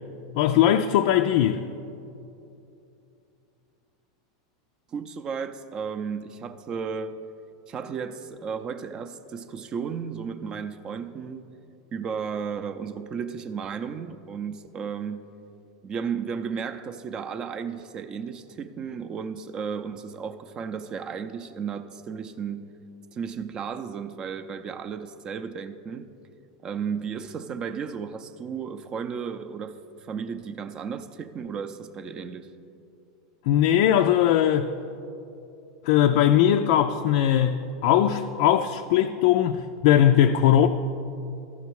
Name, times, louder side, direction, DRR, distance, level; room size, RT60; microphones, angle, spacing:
voice 1, 0.3-1.6 33.5-34.7 35.9-40.7, left 11 dB, 65° left, 0.4 m, -20 dB
voice 2, 4.9-7.2 7.7-11.4 11.9-15.2 15.8-22.7 23.1-26.1 26.6-29.7 30.0-32.5, right 6 dB, 30° right, 0.5 m, -34 dB
13.5 x 5.8 x 4.6 m
supercardioid pair, 120°, 3 cm